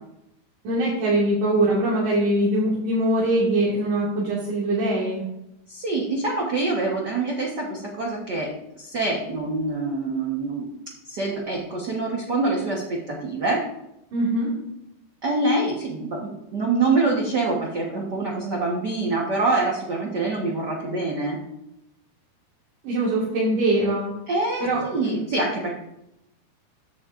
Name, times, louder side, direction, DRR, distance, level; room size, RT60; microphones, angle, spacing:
voice 1, 0.6-5.2 14.1-14.5 22.8-24.1 24.6-25.2, right 1 dB, 90° right, -6 dB, 3.5 m, -22 dB
voice 2, 5.7-8.5 8.8-10.7 11.0-13.6 15.2-21.4 24.3-25.7, right 3 dB, 50° right, -2 dB, 1.4 m, -25 dB
14.0 x 8.6 x 2.6 m, 0.85 s
omnidirectional pair, 3.5 m